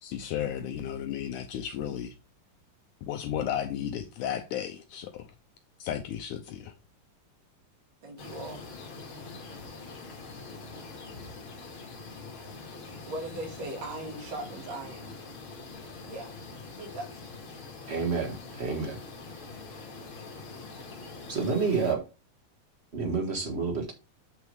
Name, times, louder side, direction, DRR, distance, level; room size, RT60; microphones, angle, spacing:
voice 1, 0.0-2.1 3.1-5.3 5.8-6.7, left 10 dB, 80° left, 1.9 m, -34 dB
voice 2, 8.0-8.6 13.1-15.1 16.1-16.3 16.8-17.2, right 1 dB, 50° right, 3.9 m, -38 dB
sound 1, 8.2-21.9, left 3 dB, 40° left, 2.4 m, -44 dB
voice 3, 17.9-19.0 21.3-22.0 22.9-23.9, right 4 dB, 90° right, 0.5 m, -29 dB
8.5 x 6.3 x 3.4 m
omnidirectional pair, 4.1 m